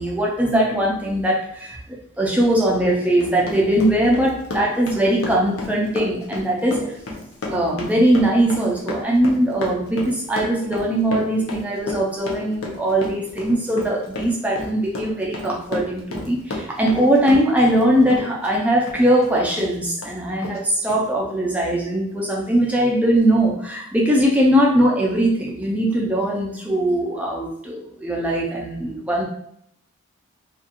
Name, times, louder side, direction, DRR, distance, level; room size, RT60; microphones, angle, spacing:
voice 1, 0.0-7.0 7.5-29.2, right 1 dB, 5° right, -3 dB, 0.4 m, -20 dB
Run, 3.0-17.8 18.1-19.7 20.0-20.1 20.4-20.6 20.9-21.0, left 2 dB, 85° left, 0.6 m, -31 dB
2.5 x 2.3 x 2.8 m, 0.71 s
head